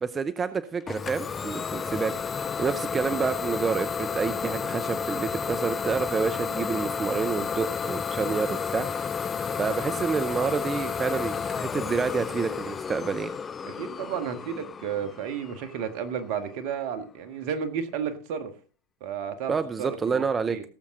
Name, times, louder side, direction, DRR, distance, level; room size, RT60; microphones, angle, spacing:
voice 1, 0.0-8.9 9.1-13.3 19.5-20.6, right 5 dB, 25° right, 12 dB, 0.7 m, -29 dB
Idling / Domestic sounds home sounds, 0.9-16.4, left 6 dB, 25° left, 0.5 m, -32 dB
voice 2, 13.7-18.5 19.0-20.2 20.5-20.6, right 7 dB, 60° right, 10 dB, 1.6 m, -32 dB
18.0 x 7.3 x 3.8 m, 0.38 s
hypercardioid pair, 90°, 0 cm